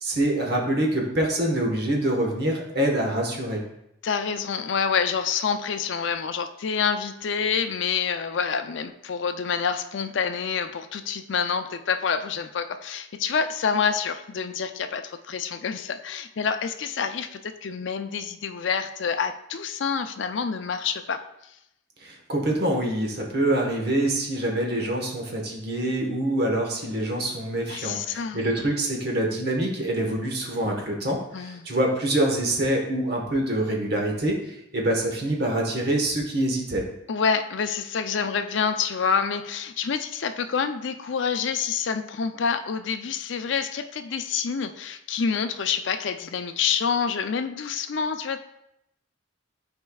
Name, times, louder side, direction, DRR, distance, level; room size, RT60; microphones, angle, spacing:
voice 1, 0.0-3.6 22.0-36.8, right 1 dB, 55° right, 0 dB, 1.3 m, -25 dB
voice 2, 4.0-21.2 27.7-28.5 31.3-31.7 37.1-48.4, left 6 dB, 65° left, 8 dB, 0.4 m, -27 dB
11.5 x 4.5 x 2.3 m, 0.82 s
head